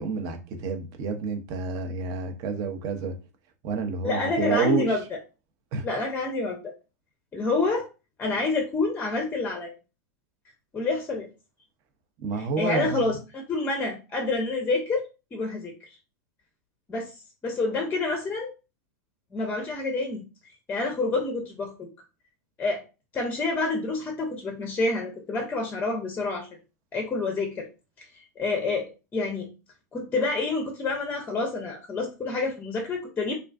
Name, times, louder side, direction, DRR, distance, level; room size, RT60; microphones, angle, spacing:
voice 1, 0.0-3.1 3.6-5.0 5.7-5.9 12.2-13.0, right 4 dB, 45° right, 0.6 m, -29 dB
voice 2, 4.0-5.0 5.8-6.7 7.3-7.9 8.2-9.7 10.7-11.3 12.3-15.7 16.9-17.1 17.4-18.5 19.3-20.2 20.7-21.9 22.6-22.8 23.1-26.5 26.9-27.7 28.0-29.5 29.9-33.3, left 3 dB, 20° left, 0.6 m, -28 dB
2.3 x 2.3 x 2.3 m
hypercardioid pair, 105°, 9 cm